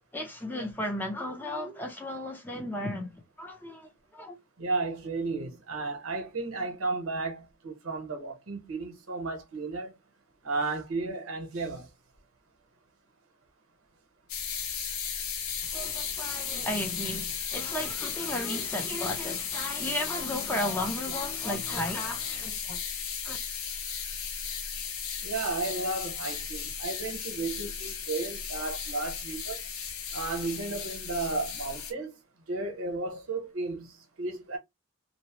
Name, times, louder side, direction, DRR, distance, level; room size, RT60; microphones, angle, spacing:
voice 1, 0.1-3.1 3.4-4.4 15.7-22.8 23.2-23.4, left 1 dB, 10° left, 0.5 m, -34 dB
voice 2, 4.6-9.9 10.4-11.8 25.2-29.6 30.1-32.1 32.5-33.9 34.2-34.6, right 3 dB, 80° right, 0.9 m, -33 dB
sound 1, 14.3-31.9, left 7 dB, 85° left, 0.7 m, -35 dB
2.7 x 2.0 x 2.9 m
head